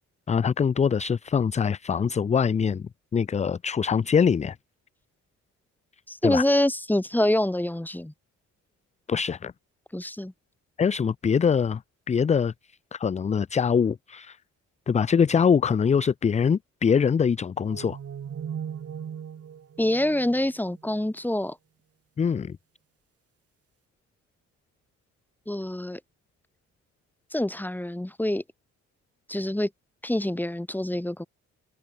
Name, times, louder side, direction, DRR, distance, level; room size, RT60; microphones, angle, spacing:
voice 1, 0.3-4.6 6.2-6.4 9.1-9.5 10.8-11.8 12.1-12.5 12.9-14.4 14.9-18.0 22.2-22.6, left 6 dB, 25° left, 0.4 m, -23 dB
voice 2, 6.1-8.1 9.9-10.3 19.8-21.5 25.5-26.0 27.3-28.4 29.3-29.7 30.0-31.3, left 1 dB, 5° left, 3.3 m, -26 dB
sound 1, 17.7-21.1, right 8 dB, 50° right, 4.6 m, -38 dB
cardioid pair, 90°, 30 cm